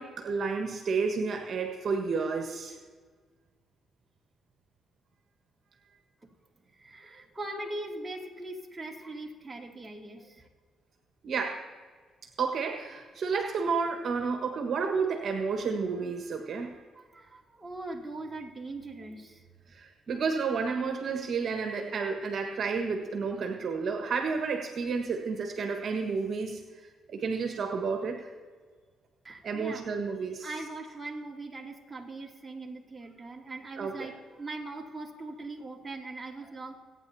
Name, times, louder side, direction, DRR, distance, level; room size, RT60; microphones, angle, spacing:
voice 1, 0.0-2.8 11.2-11.6 12.4-16.7 19.7-26.6 27.1-28.3 29.4-30.5 33.8-34.1, right 5 dB, 55° right, 3 dB, 1.5 m, -31 dB
voice 2, 6.8-10.5 16.9-19.4 29.2-29.9 30.4-36.8, right 2 dB, 15° right, -2 dB, 2.5 m, -41 dB
27.0 x 9.6 x 2.8 m, 1.5 s
cardioid pair, 90°, 0 cm